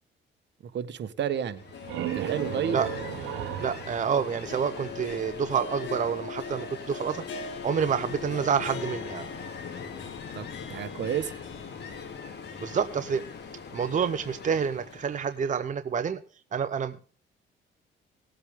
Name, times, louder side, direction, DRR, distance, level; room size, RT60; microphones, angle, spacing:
voice 1, 0.6-1.6 2.0-2.8 10.3-11.3, right 8 dB, 60° right, 10 dB, 1.3 m, -31 dB
Harp, 1.5-13.6 14.0-14.1 14.9-15.0, left 4 dB, 75° left, 2.4 m, -41 dB
Ocean, 1.5-15.6, left 6 dB, 55° left, 2.7 m, -42 dB
sound 1, 1.5-5.2, right 12 dB, 85° right, 1.0 m, -36 dB
voice 2, 3.6-7.2 7.6-9.3 12.6-13.2 13.7-16.2 16.5-17.0, right 7 dB, 40° right, 10 dB, 0.8 m, -28 dB
18.5 x 8.1 x 3.7 m, 0.38 s
cardioid pair, 90°, 20 cm